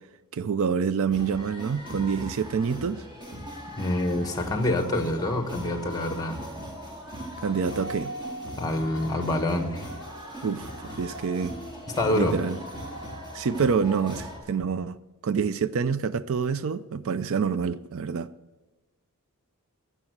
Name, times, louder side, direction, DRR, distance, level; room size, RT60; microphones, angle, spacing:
voice 1, 0.3-3.0 7.4-8.1 10.4-10.7 11.0-11.6 12.1-12.6 13.3-15.0 15.2-18.3, right 6 dB, 65° right, 0.4 m, -27 dB
sound 1, 1.1-14.4, equal, 20° right, 2.8 m, -39 dB
voice 2, 3.8-6.4 8.6-9.9 12.0-12.4, left 1 dB, 15° left, 1.3 m, -26 dB
13.0 x 8.2 x 7.8 m
head